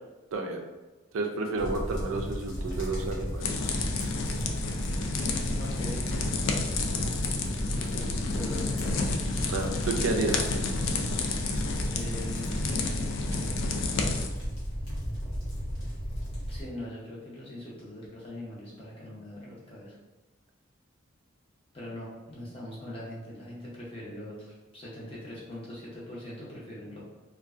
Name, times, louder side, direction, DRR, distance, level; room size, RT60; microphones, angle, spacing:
voice 1, 0.3-0.6 1.1-3.6 9.5-10.5, right 3 dB, 80° right, 3 dB, 0.3 m, -31 dB
sound 1, 1.6-16.6, equal, 85° left, 0.9 m, -34 dB
sound 2, 3.4-14.3, left 3 dB, 70° left, 0.3 m, -31 dB
voice 2, 5.6-6.4 6.6-6.9 7.7-9.1 11.9-12.9 16.5-20.0 21.7-27.0, left 1 dB, 25° left, -6 dB, 0.6 m, -42 dB
2.5 x 2.2 x 2.3 m, 1.2 s
head